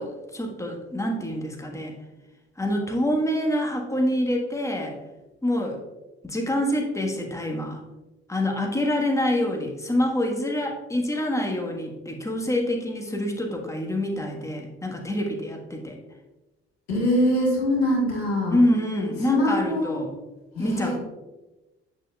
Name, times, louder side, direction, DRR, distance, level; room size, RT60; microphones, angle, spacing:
voice 1, 0.0-2.0 2.6-5.0 5.4-5.8 6.2-7.8 8.3-16.0 18.5-20.1 20.6-21.0, left 1 dB, 10° left, 1 dB, 1.4 m, -26 dB
voice 2, 16.9-18.6 19.2-20.0 20.6-21.0, left 1 dB, 85° left, -3 dB, 1.8 m, -23 dB
8.8 x 6.2 x 2.3 m, 1.1 s
hypercardioid pair, 50°, 31 cm